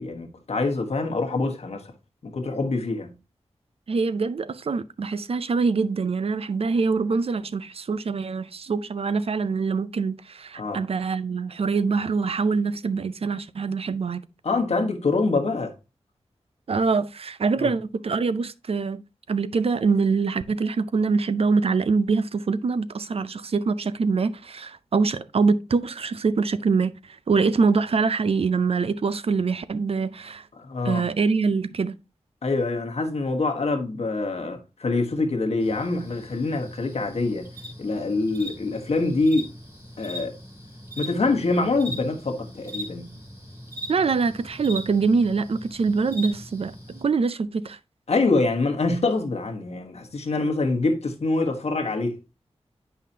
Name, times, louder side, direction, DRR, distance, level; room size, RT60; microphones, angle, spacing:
voice 1, 0.0-1.8 2.2-3.1 10.6-10.8 14.4-15.7 17.6-17.7 30.6-31.0 32.4-37.5 37.8-39.5 40.0-40.3 41.0-43.1 48.1-52.2, left 3 dB, 70° left, 1.2 m, -25 dB
voice 2, 3.9-14.2 16.7-19.0 19.3-30.5 30.8-31.9 43.9-47.8, right 4 dB, 60° right, 0.5 m, -24 dB
sound 1, 35.6-47.0, equal, 25° right, 2.8 m, -40 dB
8.3 x 5.6 x 2.7 m
wide cardioid pair, 70°, 11 cm